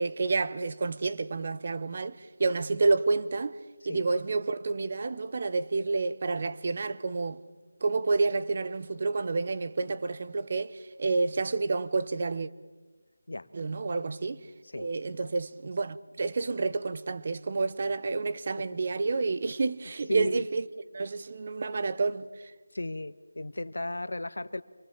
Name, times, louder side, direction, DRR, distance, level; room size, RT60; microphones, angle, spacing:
voice 1, 0.0-3.6 3.9-7.4 7.8-12.5 13.5-14.4 14.8-20.7 20.9-22.3, right 3 dB, 35° right, 0.8 m, -29 dB
voice 2, 20.1-20.4 22.7-24.6, left 2 dB, 85° left, 1.2 m, -35 dB
26.0 x 21.0 x 7.3 m
figure-of-eight pair, 175°, 0 cm